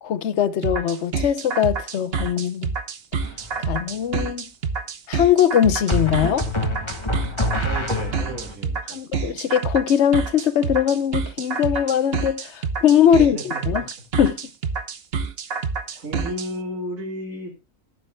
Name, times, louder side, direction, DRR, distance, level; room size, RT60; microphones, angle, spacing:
voice 1, 0.0-2.7 3.6-4.5 5.1-6.5 8.9-13.8 14.2-14.4, left 9 dB, 60° left, 1.0 m, -20 dB
sound 1, 0.6-16.5, right 5 dB, 50° right, 1.1 m, -27 dB
sound 2, 3.2-3.7 5.9-8.5, left 2 dB, 20° left, 1.6 m, -26 dB
voice 2, 7.6-9.0 13.1-13.8 16.0-17.5, equal, 85° right, 2.9 m, -33 dB
21.5 x 7.7 x 2.2 m
omnidirectional pair, 1.4 m